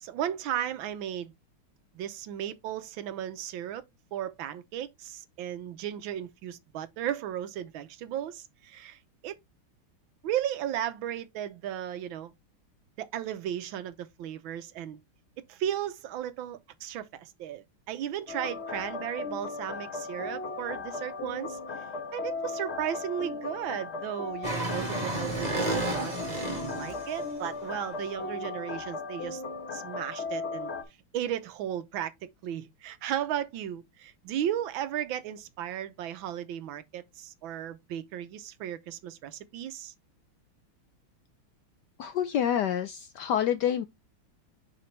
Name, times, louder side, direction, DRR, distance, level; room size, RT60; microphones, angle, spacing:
voice 1, 0.0-1.3 1.9-3.8 4.1-9.4 10.2-12.3 13.0-15.0 15.5-21.6 22.1-26.1 26.7-29.4 29.7-30.7 31.1-39.9, right 10 dB, 75° right, 1.4 m, -35 dB
sound 1, 18.3-30.8, left 4 dB, 45° left, 1.0 m, -37 dB
sound 2, 24.4-27.2, right 2 dB, 20° right, 2.0 m, -31 dB
voice 2, 42.0-43.8, left 9 dB, 75° left, 1.0 m, -27 dB
6.8 x 4.9 x 3.2 m
omnidirectional pair, 2.3 m